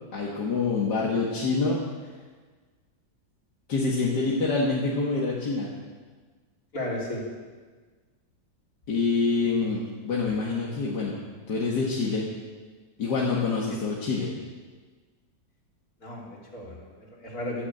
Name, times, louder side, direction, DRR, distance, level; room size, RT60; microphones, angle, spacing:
voice 1, 0.1-1.8 3.7-5.7 8.9-11.2 11.5-12.3 13.0-14.3, left 4 dB, 80° left, -4 dB, 2.5 m, -26 dB
voice 2, 6.7-7.2 13.7-13.8 16.0-17.7, left 1 dB, 60° left, -3 dB, 4.0 m, -34 dB
13.0 x 13.0 x 8.1 m, 1.4 s
omnidirectional pair, 1.8 m